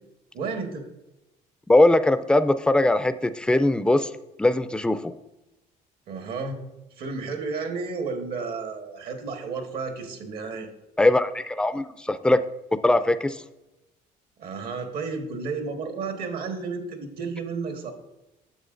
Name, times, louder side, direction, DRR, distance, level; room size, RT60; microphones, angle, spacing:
voice 1, 0.3-0.9 6.1-6.6 7.0-10.7 14.4-17.9, right 4 dB, 70° right, 5 dB, 1.4 m, -32 dB
voice 2, 1.7-4.1 4.4-5.1 11.0-12.4 12.8-13.4, left 2 dB, 5° left, 12 dB, 0.3 m, -20 dB
9.8 x 7.0 x 2.5 m, 0.97 s
cardioid pair, 110°, 17 cm